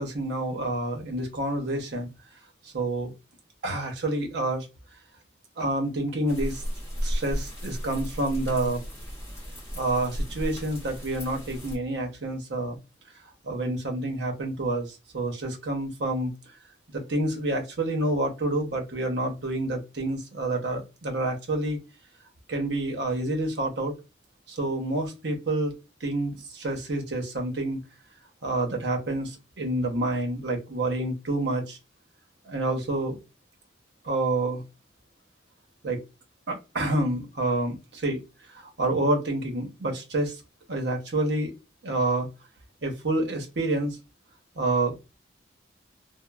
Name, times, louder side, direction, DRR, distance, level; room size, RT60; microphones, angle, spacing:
voice 1, 0.0-2.1 2.7-3.1 3.6-4.7 5.6-6.6 7.0-8.8 9.7-12.8 13.4-16.3 16.9-21.8 22.5-23.9 24.5-25.7 26.0-27.8 28.4-31.8 32.5-33.2 34.0-34.6 35.8-36.0 36.5-38.2 38.5-40.3 40.7-41.5 41.8-42.3 42.8-44.0 44.6-44.9, right 2 dB, 65° right, 2 dB, 0.7 m, -28 dB
sound 1, 6.3-11.8, equal, 15° left, 0.9 m, -34 dB
2.9 x 2.0 x 2.2 m, 0.26 s
head